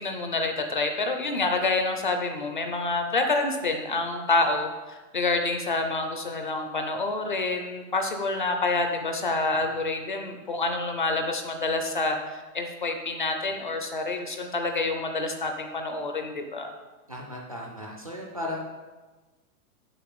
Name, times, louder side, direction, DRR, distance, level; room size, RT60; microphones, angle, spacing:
voice 1, 0.0-16.7, left 3 dB, 35° left, 5 dB, 0.5 m, -28 dB
voice 2, 17.1-18.7, left 1 dB, 25° right, -1 dB, 0.4 m, -35 dB
7.0 x 5.5 x 6.5 m, 1.3 s
hypercardioid pair, 170°, 47 cm